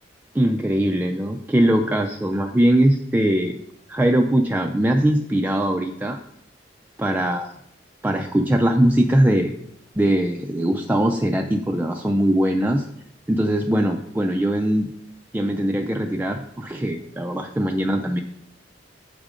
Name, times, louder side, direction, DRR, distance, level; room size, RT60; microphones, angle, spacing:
voice 1, 0.3-3.5 3.9-6.2 7.0-7.5 8.0-9.5 10.0-12.9 13.3-14.9 15.3-18.2, right 1 dB, 10° right, 3 dB, 0.3 m, -21 dB
7.3 x 3.6 x 5.0 m, 0.74 s
head